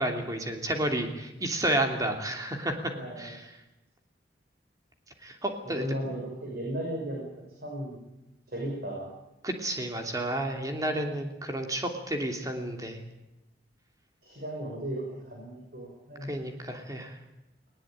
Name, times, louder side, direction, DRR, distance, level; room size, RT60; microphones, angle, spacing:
voice 1, 0.0-2.9 3.2-3.4 5.2-6.0 9.4-13.0 16.2-17.2, right 1 dB, 20° right, 4 dB, 2.9 m, -31 dB
voice 2, 2.9-3.3 5.6-7.3 7.6-8.0 8.5-9.1 10.8-11.1 14.2-16.3, right 1 dB, 55° right, -2 dB, 6.4 m, -36 dB
20.0 x 19.0 x 9.0 m, 0.95 s
head